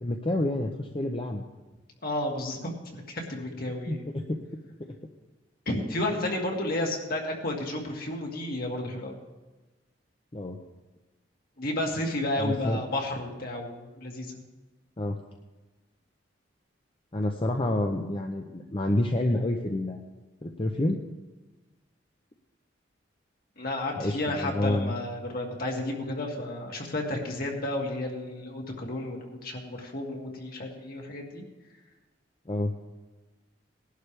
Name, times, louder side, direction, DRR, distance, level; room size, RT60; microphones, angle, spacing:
voice 1, 0.0-1.5 3.9-4.4 6.2-6.4 10.3-10.6 12.4-12.8 15.0-15.2 17.1-20.0 20.4-21.0 24.0-24.9 32.5-32.7, left 1 dB, 30° left, 2 dB, 0.8 m, -28 dB
voice 2, 2.0-4.0 5.7-9.2 11.6-14.3 23.6-31.4, left 1 dB, 55° left, 0 dB, 2.3 m, -32 dB
19.5 x 11.5 x 3.4 m, 1.2 s
head